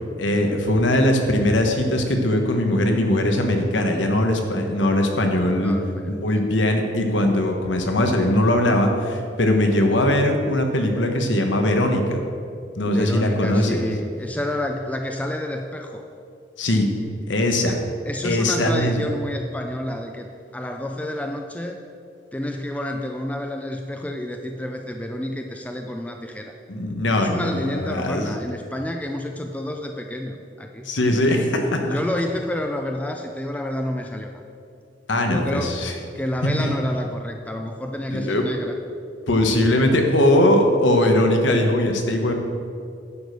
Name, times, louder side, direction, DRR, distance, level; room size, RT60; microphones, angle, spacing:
voice 1, 0.2-5.7 6.2-12.2 12.8-13.8 16.6-16.9 17.3-17.8 18.2-19.0 26.7-28.3 30.8-32.0 35.1-35.9 36.6-36.7 38.1-38.4 39.3-42.3, left 1 dB, 85° left, 4 dB, 1.2 m, -20 dB
voice 2, 5.6-6.5 12.8-16.0 17.7-21.8 22.3-26.5 27.2-30.9 31.9-34.3 35.2-35.8 36.1-38.8 39.5-39.8 40.1-40.2, left 1 dB, 10° left, 3 dB, 0.4 m, -29 dB
10.0 x 5.1 x 6.5 m, 2.4 s
head